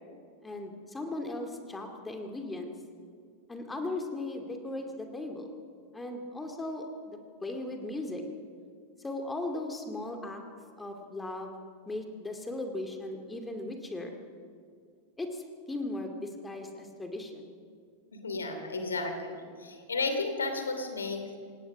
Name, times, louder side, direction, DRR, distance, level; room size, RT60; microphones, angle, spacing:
voice 1, 0.4-2.7 3.5-5.5 5.9-8.2 9.0-10.4 10.8-11.5 11.9-14.1 15.2-17.5, left 2 dB, 10° left, 4 dB, 2.4 m, -37 dB
voice 2, 18.1-21.4, left 3 dB, 75° left, 6 dB, 3.0 m, -33 dB
28.0 x 17.5 x 6.1 m, 2.2 s
figure-of-eight pair, 90°, 0 cm